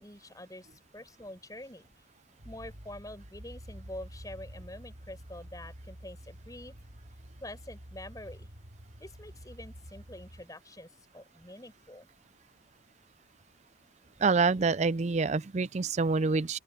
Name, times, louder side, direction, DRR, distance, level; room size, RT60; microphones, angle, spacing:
voice 1, 0.0-1.9 2.4-6.8 7.4-8.5 9.0-12.1, left 1 dB, 20° left, 7.4 m, -46 dB
sound 1, 2.4-10.5, equal, 70° right, 3.9 m, -49 dB
voice 2, 14.2-16.6, right 4 dB, 35° right, 0.4 m, -26 dB
open air
head